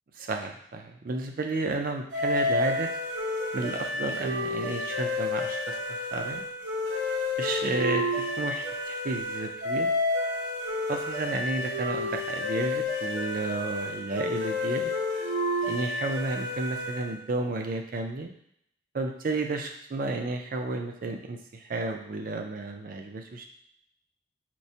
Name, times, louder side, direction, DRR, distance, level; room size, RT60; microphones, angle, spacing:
voice 1, 0.2-2.9 3.5-6.4 7.4-9.9 10.9-14.9 15.7-18.3 18.9-23.5, right 2 dB, 45° right, 4 dB, 0.4 m, -32 dB
sound 1, 2.1-17.2, left 2 dB, 85° right, 1.0 m, -30 dB
4.4 x 2.1 x 2.7 m, 0.71 s
head